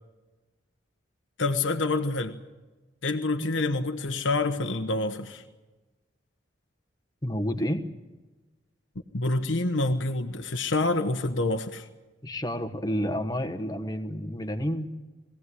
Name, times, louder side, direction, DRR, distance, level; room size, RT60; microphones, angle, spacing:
voice 1, 1.4-2.3 3.0-5.4 9.1-11.9, left 2 dB, 85° left, 6 dB, 1.2 m, -27 dB
voice 2, 7.2-7.8 12.2-14.9, equal, 20° left, 8 dB, 1.3 m, -30 dB
22.0 x 16.5 x 9.9 m, 1.2 s
head